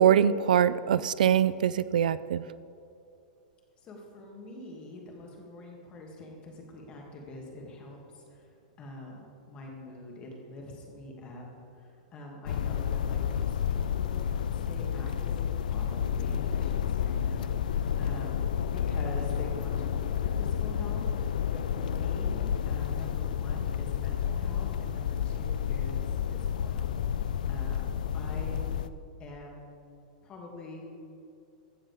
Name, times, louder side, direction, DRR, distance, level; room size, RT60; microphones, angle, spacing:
voice 1, 0.0-2.4, right 9 dB, 90° right, 16 dB, 0.4 m, -23 dB
voice 2, 3.8-8.5 8.8-11.4 11.8-14.3 14.5-28.6 29.2-29.7 30.2-30.9, left 1 dB, 25° left, -1 dB, 2.2 m, -45 dB
sound 1, 12.5-28.9, left 8 dB, 85° left, 0.4 m, -30 dB
15.0 x 10.0 x 3.5 m, 2.6 s
supercardioid pair, 150°, 4 cm